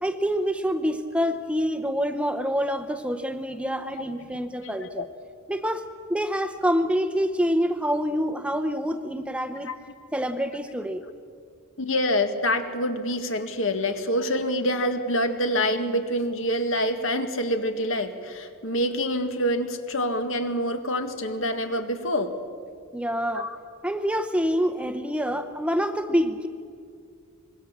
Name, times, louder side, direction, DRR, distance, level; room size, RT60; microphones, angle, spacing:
voice 1, 0.0-5.1 5.5-9.7 10.1-11.0 22.9-23.5 23.8-26.5, equal, 5° right, 8 dB, 0.8 m, -26 dB
voice 2, 4.3-5.1 9.7-9.8 11.8-22.3 23.3-23.6, equal, 65° left, 7 dB, 1.8 m, -26 dB
25.5 x 21.5 x 7.4 m, 2.3 s
head